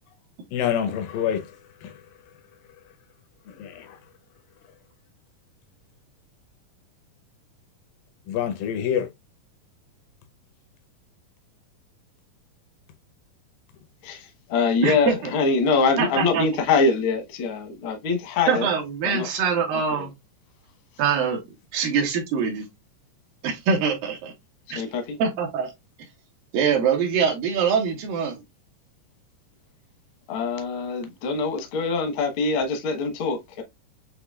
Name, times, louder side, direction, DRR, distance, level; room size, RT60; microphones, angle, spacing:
voice 1, 0.5-1.6 1.8-2.0 3.5-4.0 8.3-9.1, left 9 dB, 90° left, 2.5 m, -27 dB
voice 2, 14.0-18.7 19.0-19.3 19.9-20.1 24.7-25.2 30.3-33.6, left 4 dB, 70° left, 1.2 m, -24 dB
voice 3, 14.8-15.2 16.0-16.4 18.5-20.1 21.0-21.4 21.7-22.7 23.4-24.3 24.7-24.8 25.2-25.7 26.5-28.4, right 6 dB, 80° right, 2.8 m, -23 dB
7.7 x 2.9 x 2.3 m
omnidirectional pair, 3.9 m